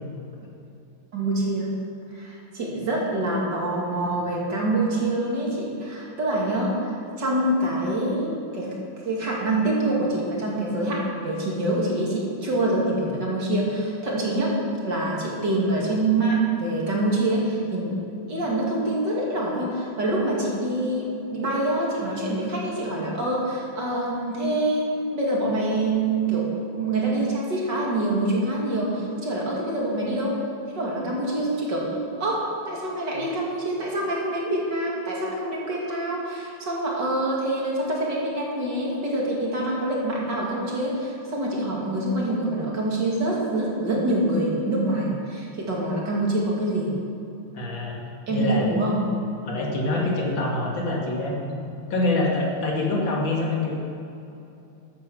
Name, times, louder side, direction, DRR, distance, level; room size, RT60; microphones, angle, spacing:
voice 1, 1.1-1.7 2.1-14.6 14.8-17.9 18.3-26.5 26.8-30.4 30.7-46.9 48.3-49.0, right 1 dB, 60° right, -3 dB, 3.2 m, -25 dB
voice 2, 47.5-48.0 48.3-48.7 49.4-51.6 51.9-53.8, left 2 dB, 65° left, -2 dB, 2.9 m, -25 dB
13.5 x 9.7 x 6.3 m, 2.7 s
omnidirectional pair, 2.2 m